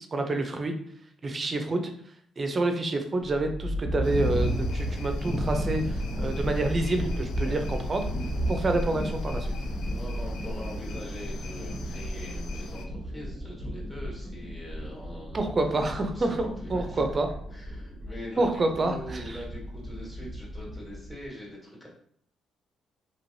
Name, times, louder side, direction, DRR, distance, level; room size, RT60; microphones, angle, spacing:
voice 1, 0.1-0.7 1.2-1.9 2.4-8.0 8.5-9.5 15.3-17.3 18.4-19.4, right 2 dB, 35° right, 5 dB, 0.5 m, -28 dB
sound 1, 3.2-21.3, equal, ahead, 1.2 m, -33 dB
sound 2, 4.0-12.9, left 1 dB, 75° left, 0.4 m, -41 dB
voice 2, 10.0-15.5 15.9-17.0 17.5-21.9, equal, 15° left, -5 dB, 1.5 m, -42 dB
3.0 x 2.9 x 2.7 m, 0.63 s
cardioid pair, 90°, 0 cm